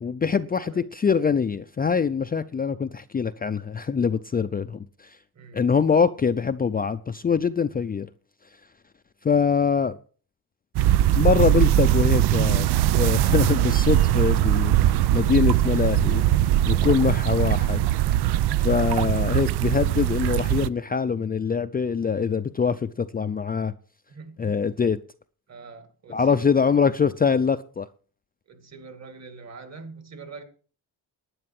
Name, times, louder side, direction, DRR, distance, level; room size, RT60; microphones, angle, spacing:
voice 1, 0.0-5.2 5.5-8.1 9.2-10.0 11.2-12.7 12.9-16.2 16.7-17.8 18.6-23.7 24.4-25.0 26.1-27.9, left 6 dB, 25° left, 0.5 m, -24 dB
voice 2, 5.3-5.7 24.1-24.7 25.5-26.7 28.5-30.4, right 4 dB, 40° right, 2.4 m, -44 dB
sound 1, 10.7-20.7, right 13 dB, 80° right, 0.6 m, -21 dB
11.0 x 9.6 x 6.0 m
cardioid pair, 115°, 39 cm